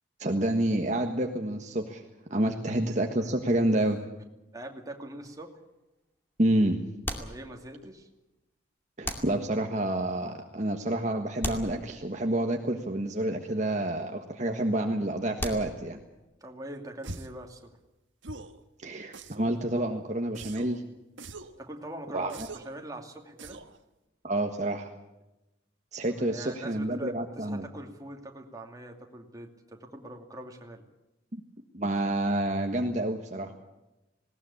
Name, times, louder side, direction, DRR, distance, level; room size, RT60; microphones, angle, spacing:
voice 1, 0.2-2.0 2.3-4.0 6.4-6.8 9.0-16.0 18.8-20.8 22.1-22.3 24.2-24.9 25.9-27.6 31.3-31.4 31.7-33.5, right 1 dB, 40° right, 3 dB, 1.5 m, -28 dB
voice 2, 4.5-5.6 7.2-8.1 16.4-17.8 21.6-23.6 26.1-30.8, right 1 dB, 20° right, 2 dB, 2.6 m, -43 dB
sound 1, 5.2-5.8 7.0-8.0 9.0-9.9 11.4-12.5 15.4-16.2, left 1 dB, 10° left, 2.4 m, -38 dB
sound 2, 17.0-17.4 18.2-18.6 19.1-19.6 20.3-20.8 21.2-21.6 22.3-22.8 23.4-23.8, right 3 dB, 90° right, 1.5 m, -43 dB
19.5 x 18.5 x 8.6 m, 0.98 s
head